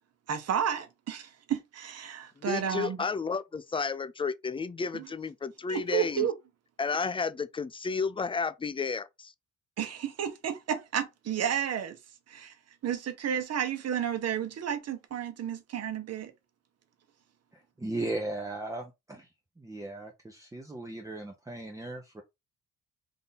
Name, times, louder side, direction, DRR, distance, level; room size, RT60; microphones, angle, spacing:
voice 1, 0.3-3.0 4.9-5.1 5.7-6.3 9.8-12.0 12.3-12.5 12.8-16.3, right 9 dB, 55° right, 1.1 m, -32 dB
voice 2, 2.4-6.3 6.8-9.3, left 5 dB, 20° left, 0.4 m, -32 dB
voice 3, 17.5-19.3 19.6-22.2, right 2 dB, 10° right, 0.7 m, -37 dB
3.6 x 2.7 x 4.0 m
cardioid pair, 90°, 30 cm